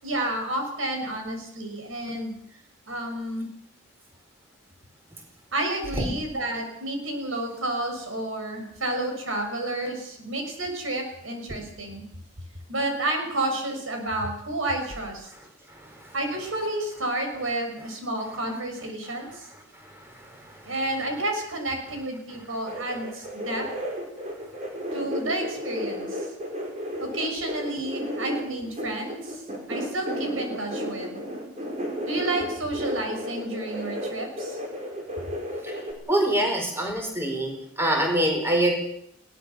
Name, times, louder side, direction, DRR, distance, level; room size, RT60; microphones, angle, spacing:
voice 1, 0.0-2.3 2.9-3.5 5.5-12.0 12.7-15.3 16.1-19.5 20.6-23.6 24.9-26.3 27.0-29.4 29.7-31.2 32.0-34.6, right 1 dB, 80° right, 4 dB, 6.2 m, -30 dB
sound 1, 22.7-35.9, equal, 35° right, 5.2 m, -33 dB
voice 2, 36.1-38.7, right 1 dB, 10° right, 2 dB, 4.6 m, -24 dB
21.0 x 18.5 x 7.0 m, 0.74 s
head